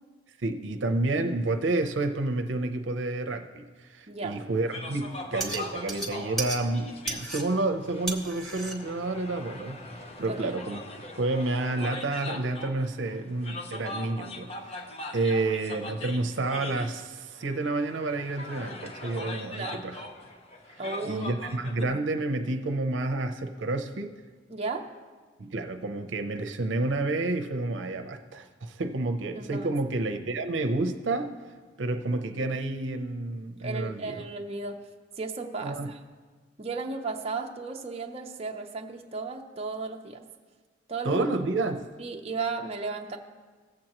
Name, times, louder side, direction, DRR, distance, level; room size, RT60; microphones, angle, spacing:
voice 1, 0.4-9.9 10.2-10.8 11.2-14.9 15.1-20.0 21.0-24.1 25.4-31.3 31.8-34.2 35.6-35.9 41.0-41.9, right 2 dB, 75° right, 6 dB, 0.6 m, -30 dB
voice 2, 4.1-4.4 10.3-10.5 19.6-19.9 20.8-21.4 24.5-24.9 29.3-29.7 33.6-34.8 35.2-36.0 36.6-40.2 40.9-41.2 42.0-43.2, right 4 dB, 35° right, 2 dB, 0.6 m, -34 dB
sound 1, 4.6-21.8, left 2 dB, 35° left, 0.7 m, -41 dB
sound 2, 5.1-10.5, right 2 dB, ahead, 1.0 m, -37 dB
17.5 x 7.7 x 3.0 m, 1.4 s
head